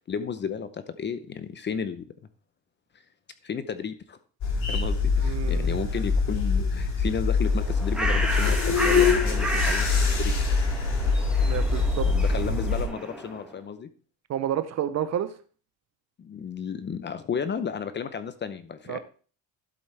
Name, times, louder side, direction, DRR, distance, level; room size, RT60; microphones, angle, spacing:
voice 1, 0.1-2.0 3.4-4.2 4.7-9.9 10.1-10.3 12.0-13.9 16.2-19.0, left 6 dB, 25° left, 12 dB, 0.6 m, -33 dB
sound 1, 4.4-12.9, left 4 dB, 55° left, 5.0 m, -24 dB
voice 2, 5.2-5.8 11.4-12.4 14.3-15.3 18.9-19.0, right 10 dB, 40° right, 12 dB, 0.6 m, -30 dB
Bird, 7.4-13.5, right 1 dB, ahead, 1.7 m, -32 dB
12.0 x 7.8 x 3.3 m, 0.40 s
cardioid pair, 135°, 40 cm